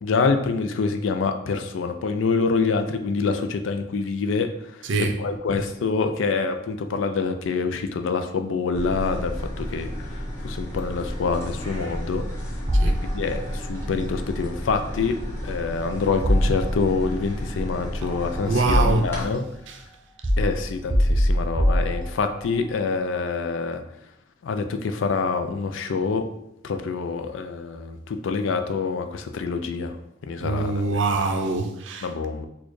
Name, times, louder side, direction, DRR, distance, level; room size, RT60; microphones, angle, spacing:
voice 1, 0.0-12.6 13.0-19.4 20.4-23.8 24.4-26.2 26.6-30.0 30.2-30.7 31.1-31.2 32.0-32.5, left 4 dB, 85° left, 7 dB, 0.4 m, -26 dB
voice 2, 4.8-5.2 12.7-13.0 18.5-19.1 19.7-19.8 30.4-32.1, right 3 dB, 70° right, 5 dB, 0.5 m, -24 dB
sound 1, 8.7-19.2, equal, 15° left, 1.1 m, -32 dB
sound 2, 12.7-13.6 16.2-17.1 18.0-19.3 20.2-22.5, equal, 25° right, 0.6 m, -23 dB
4.2 x 2.3 x 3.1 m, 0.81 s
head